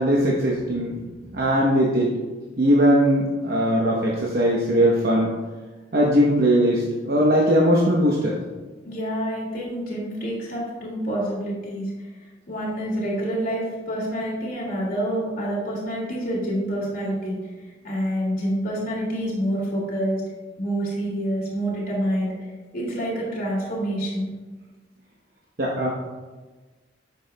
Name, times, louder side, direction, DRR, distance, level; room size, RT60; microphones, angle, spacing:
voice 1, 0.0-0.9 1.3-2.1 2.6-5.3 5.9-8.4 25.6-25.9, equal, 55° right, -3 dB, 0.9 m, -20 dB
voice 2, 0.8-1.5 8.9-11.9 12.5-17.4 17.8-20.2 20.6-24.3, equal, 50° left, -5 dB, 2.2 m, -27 dB
10.0 x 6.7 x 2.2 m, 1.3 s
head